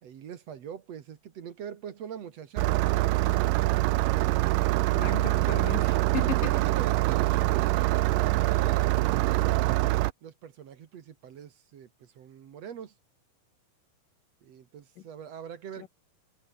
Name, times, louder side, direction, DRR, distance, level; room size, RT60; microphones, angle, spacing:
voice 1, 0.0-4.3 6.2-9.6 10.2-12.9 14.4-15.9, right 8 dB, 55° right, 2.5 m, -43 dB
Engine starting, 2.6-10.1, right 19 dB, 90° right, 2.3 m, -24 dB
voice 2, 4.9-6.5 15.8-15.9, left 12 dB, 80° left, 3.0 m, -36 dB
omnidirectional pair, 3.8 m